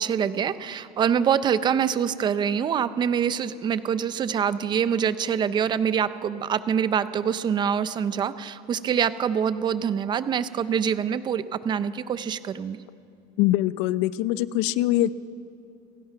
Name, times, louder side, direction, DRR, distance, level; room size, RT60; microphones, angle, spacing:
voice 1, 0.0-12.8, right 8 dB, 25° right, 14 dB, 0.5 m, -25 dB
voice 2, 13.4-15.1, left 15 dB, 75° left, 17 dB, 0.6 m, -23 dB
28.0 x 16.5 x 5.7 m, 2.6 s
cardioid pair, 165°, 18 cm